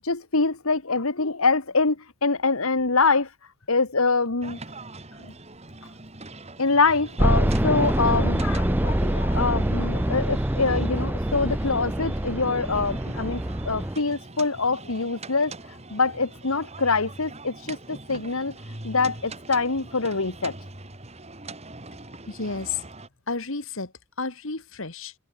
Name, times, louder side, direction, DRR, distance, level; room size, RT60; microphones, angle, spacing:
voice 1, 0.0-3.3 3.7-4.6 6.6-15.5 15.9-18.5 18.8-20.5, left 4 dB, 80° left, 1.7 m, -24 dB
sound 1, 4.4-23.1, right 2 dB, 30° right, 3.5 m, -42 dB
sound 2, 7.2-14.0, right 1 dB, 10° right, 0.6 m, -25 dB
voice 2, 22.2-22.8 23.3-23.9 24.2-25.1, left 4 dB, 65° left, 2.2 m, -31 dB
head